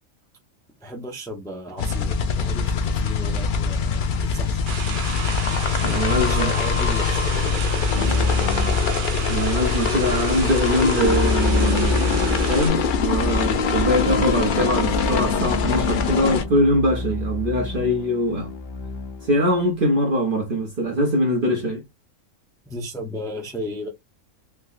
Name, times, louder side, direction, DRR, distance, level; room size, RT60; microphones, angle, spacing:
voice 1, 0.8-4.8 6.3-8.8 22.7-23.9, equal, 5° left, 0.5 m, -35 dB
sound 1, 1.8-16.4, left 5 dB, 90° left, 0.4 m, -23 dB
sound 2, 4.7-12.7, right 9 dB, 75° right, 1.0 m, -33 dB
voice 2, 5.8-6.5 9.3-18.5 19.2-21.8, equal, 50° right, 0.7 m, -22 dB
Keyboard (musical), 8.0-9.6 11.0-19.4, left 2 dB, 50° left, 1.0 m, -29 dB
3.5 x 2.8 x 2.4 m
omnidirectional pair, 1.5 m